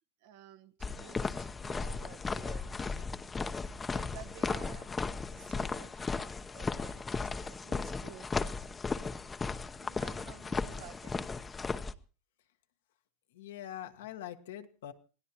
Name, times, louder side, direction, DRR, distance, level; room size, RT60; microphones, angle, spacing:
voice 1, 0.2-3.1 3.5-4.9 5.3-7.1 7.4-8.7 9.8-11.1, right 11 dB, 70° right, 10 dB, 1.3 m, -53 dB
sound 1, 0.8-11.9, left 4 dB, 20° left, 0.8 m, -36 dB
voice 2, 13.3-14.9, left 11 dB, 80° left, 8 dB, 1.3 m, -43 dB
26.0 x 17.5 x 2.9 m, 0.36 s
hypercardioid pair, 100°, 0 cm